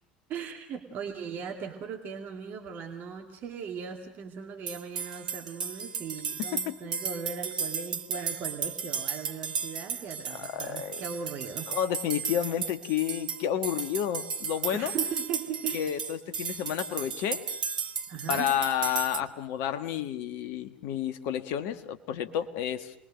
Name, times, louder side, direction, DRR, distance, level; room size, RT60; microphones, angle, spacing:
voice 1, 0.3-11.7 14.7-15.9 18.1-18.5, right 6 dB, 45° right, 3 dB, 2.3 m, -38 dB
sound 1, 4.7-19.2, right 6 dB, 75° right, 1.0 m, -35 dB
voice 2, 6.4-6.8 10.4-11.0 11.7-14.9 15.7-17.4 18.3-22.9, left 10 dB, 60° left, 9 dB, 1.5 m, -30 dB
28.0 x 21.5 x 6.5 m, 0.72 s
figure-of-eight pair, 65°, 5 cm